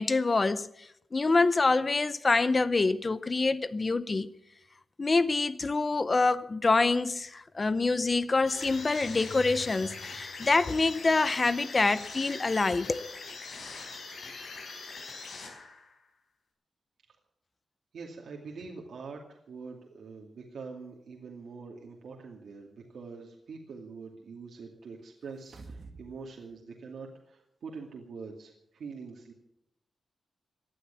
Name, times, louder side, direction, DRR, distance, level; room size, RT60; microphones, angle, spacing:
voice 1, 0.0-4.3 5.0-13.0, left 3 dB, 30° left, 0.6 m, -26 dB
sound 1, 8.5-16.0, left 4 dB, 65° left, 5.0 m, -42 dB
voice 2, 17.9-29.3, right 4 dB, 75° right, 2.5 m, -44 dB
sound 2, 25.3-26.2 26.5-26.6, right 3 dB, 40° right, 1.5 m, -47 dB
18.0 x 11.5 x 7.0 m
wide cardioid pair, 165°, 0 cm